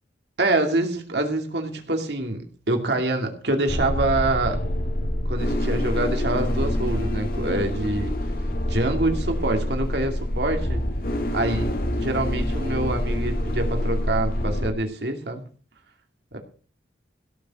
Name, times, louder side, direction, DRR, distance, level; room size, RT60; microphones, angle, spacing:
voice 1, 0.4-4.6 5.3-8.1 8.7-10.8 11.3-15.4 16.3-16.4, right 2 dB, 65° right, 4 dB, 2.5 m, -26 dB
sound 1, 3.7-14.7, left 1 dB, 55° left, 1.7 m, -26 dB
17.0 x 6.7 x 6.3 m, 0.39 s
head